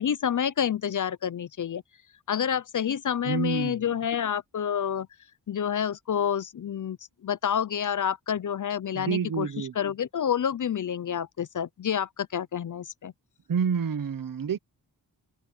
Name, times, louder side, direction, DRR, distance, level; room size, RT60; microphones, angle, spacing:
voice 1, 0.0-1.8 2.3-5.1 5.5-7.0 7.2-13.1, left 8 dB, 50° left, 0.6 m, -28 dB
voice 2, 3.2-3.8 8.9-9.7 13.5-14.6, right 6 dB, 55° right, 1.2 m, -28 dB
wide cardioid pair, 115°, 41 cm